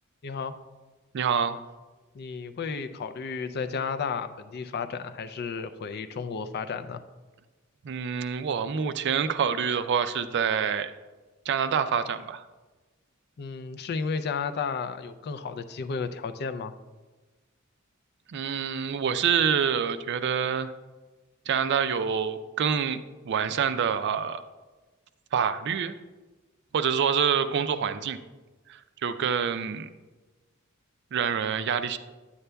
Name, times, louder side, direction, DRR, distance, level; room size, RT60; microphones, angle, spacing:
voice 1, 0.2-0.5 2.1-7.0 13.4-16.7, left 5 dB, 50° left, 10 dB, 0.4 m, -33 dB
voice 2, 1.1-1.6 7.8-10.9 11.5-12.4 18.3-20.7 21.5-23.0 23.2-24.4 25.3-26.0 26.7-28.2 28.7-29.9 31.1-32.0, right 7 dB, 55° right, 11 dB, 0.4 m, -26 dB
9.8 x 8.0 x 2.2 m, 1.2 s
head